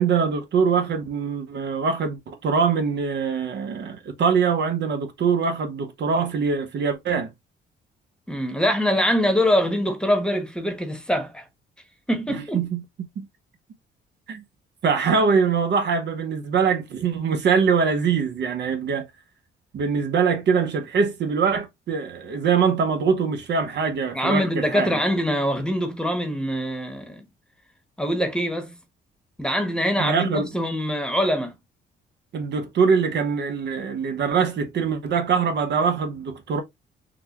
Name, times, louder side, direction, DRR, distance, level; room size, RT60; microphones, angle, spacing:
voice 1, 0.0-7.3 12.3-12.8 13.2-13.3 14.3-14.4 14.8-19.0 19.7-25.0 30.0-30.5 32.3-36.6, right 6 dB, 60° right, 0.8 m, -23 dB
voice 2, 8.3-11.4 12.1-12.6 24.1-27.3 28.0-28.8 29.4-31.5, equal, 5° left, 1.0 m, -24 dB
4.0 x 2.3 x 2.9 m
cardioid pair, 90°, 20 cm